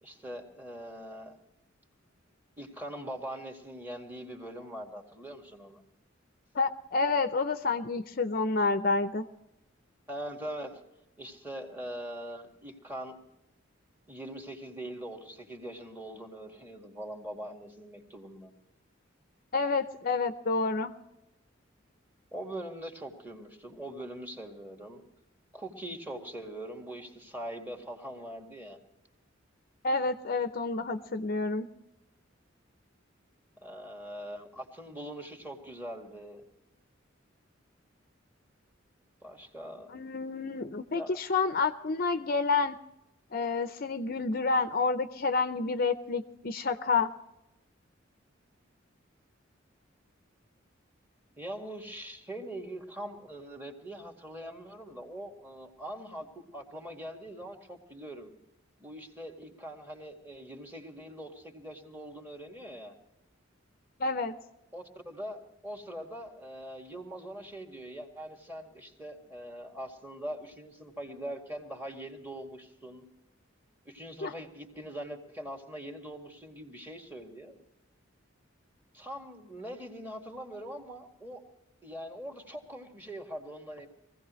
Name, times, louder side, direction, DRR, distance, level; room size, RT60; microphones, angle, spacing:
voice 1, 0.0-1.4 2.6-5.8 10.1-10.8 11.2-13.2 14.1-18.5 22.3-25.0 25.5-28.8 33.6-36.4 39.2-40.0 40.9-41.1 51.4-58.3 58.8-63.0 64.7-73.0 73.9-77.6 78.9-81.4 81.8-83.9, right 1 dB, 10° right, 3 dB, 2.0 m, -42 dB
voice 2, 6.5-9.3 19.5-20.9 29.8-31.7 39.9-42.8 43.3-47.1 64.0-64.3 74.2-74.3, left 4 dB, 50° left, 10 dB, 0.6 m, -29 dB
22.5 x 16.0 x 3.1 m, 0.89 s
head